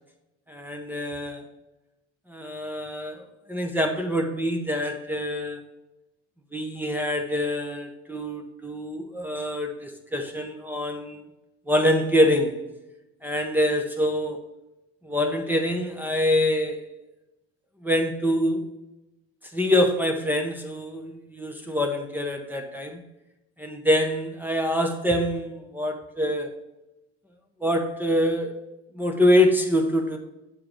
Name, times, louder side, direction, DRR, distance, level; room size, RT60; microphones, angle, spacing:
voice 1, 0.5-1.4 2.3-5.6 6.5-11.2 11.7-12.6 13.2-14.4 15.0-16.8 17.8-18.6 19.5-23.0 23.6-26.5 27.6-28.6 28.9-30.2, left 1 dB, 5° right, 4 dB, 0.9 m, -25 dB
7.6 x 4.6 x 4.9 m, 0.95 s
supercardioid pair, 105°, 30 cm